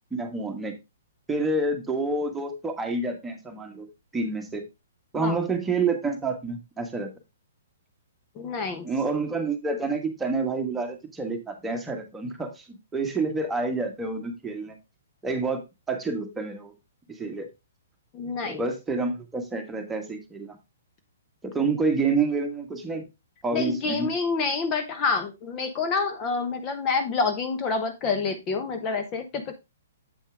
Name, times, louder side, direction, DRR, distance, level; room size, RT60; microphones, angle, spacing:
voice 1, 0.1-0.7 1.3-3.9 4.1-4.6 5.1-7.1 8.8-14.8 15.2-15.6 15.9-16.7 17.2-17.5 18.4-20.6 21.4-23.0 23.4-24.1, right 3 dB, 10° right, 3 dB, 1.5 m, -28 dB
voice 2, 8.3-8.9 18.1-18.7 23.5-29.6, left 4 dB, 30° left, 7 dB, 1.1 m, -28 dB
8.0 x 5.4 x 3.5 m, 0.23 s
hypercardioid pair, 125°, 0 cm